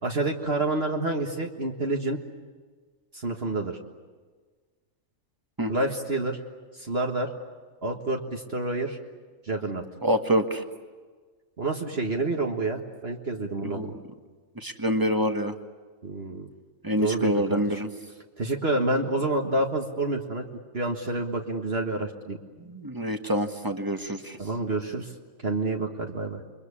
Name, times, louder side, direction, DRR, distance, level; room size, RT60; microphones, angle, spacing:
voice 1, 0.0-2.2 3.1-3.8 5.7-6.4 6.7-7.3 7.8-9.0 9.4-9.8 11.6-13.9 16.0-16.5 17.0-17.6 18.4-20.4 20.7-22.4 24.4-25.1 25.4-26.4, right 2 dB, 50° right, 2 dB, 1.9 m, -28 dB
voice 2, 10.0-10.6 13.6-13.9 14.6-15.5 16.8-17.9 22.6-24.4, equal, 15° right, 6 dB, 1.5 m, -26 dB
28.5 x 23.5 x 8.5 m, 1.5 s
omnidirectional pair, 1.4 m